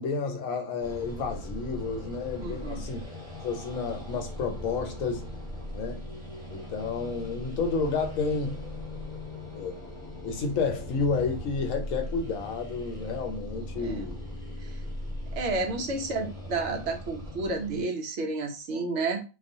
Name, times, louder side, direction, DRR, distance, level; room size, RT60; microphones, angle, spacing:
voice 1, 0.0-3.0 3.4-5.2 5.7-6.0 6.5-8.6 9.6-9.8 10.2-14.2 15.9-16.0, left 4 dB, 75° left, 1.0 m, -31 dB
sound 1, 0.8-17.8, left 1 dB, 25° right, 1.0 m, -39 dB
voice 2, 2.4-2.9 13.8-14.1 15.3-19.2, right 3 dB, 65° right, 0.8 m, -31 dB
2.4 x 2.3 x 2.6 m
omnidirectional pair, 1.4 m